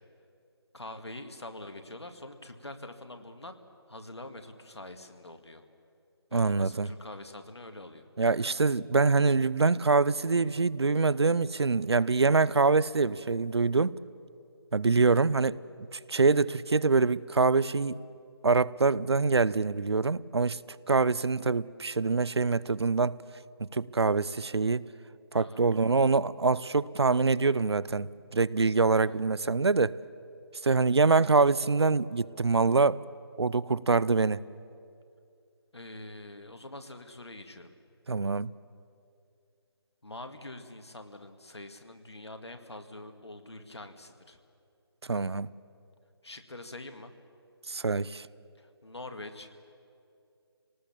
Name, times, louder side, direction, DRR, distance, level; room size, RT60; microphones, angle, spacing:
voice 1, 0.7-3.6 3.9-5.6 6.3-8.1 25.3-25.6 29.0-29.2 35.7-37.7 40.0-44.4 46.2-47.1 48.6-49.5, left 2 dB, 85° left, 7 dB, 2.1 m, -45 dB
voice 2, 6.3-6.9 8.2-14.0 14.7-15.6 15.9-17.9 18.4-20.6 20.9-23.2 23.6-24.9 25.3-30.0 30.6-33.0 33.4-34.4 38.1-38.5 45.1-45.5 47.7-48.3, right 4 dB, 80° right, 21 dB, 0.6 m, -25 dB
26.5 x 19.0 x 7.3 m, 2.5 s
figure-of-eight pair, 160°, 14 cm